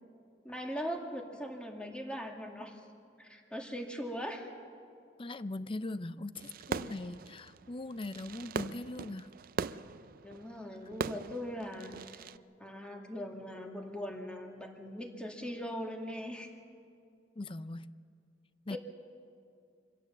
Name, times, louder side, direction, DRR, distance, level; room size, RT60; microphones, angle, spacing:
voice 1, 0.4-2.8 3.2-4.5 10.2-12.3 12.6-16.5 18.7-18.8, equal, 5° left, 2 dB, 2.1 m, -40 dB
voice 2, 5.2-9.3 17.4-17.9 18.7-18.8, left 2 dB, 30° left, 15 dB, 0.5 m, -40 dB
Fireworks, 6.3-12.4, right 5 dB, 55° right, 0.4 m, -41 dB
25.5 x 16.5 x 7.3 m, 2.4 s
head